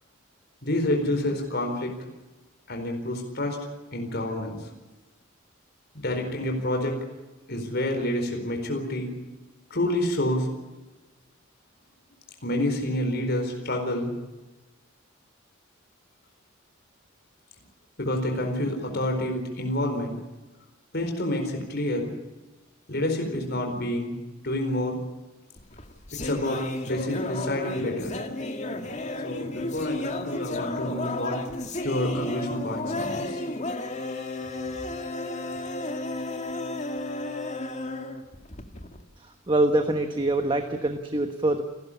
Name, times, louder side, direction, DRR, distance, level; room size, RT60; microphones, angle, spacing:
voice 1, 0.6-1.9 2.7-3.6 3.9-4.7 6.0-7.0 7.5-9.1 9.7-10.5 12.4-14.1 18.0-20.1 20.9-22.1 22.9-24.1 24.4-25.0 26.1-28.1 29.2-31.4 31.8-33.4 34.4-34.5, left 1 dB, 50° left, 3 dB, 4.4 m, -28 dB
sound 1, 25.6-39.0, left 2 dB, 35° left, 2.1 m, -33 dB
voice 2, 39.2-41.6, right 1 dB, 25° right, 6 dB, 1.3 m, -25 dB
29.5 x 13.0 x 8.6 m, 1.1 s
head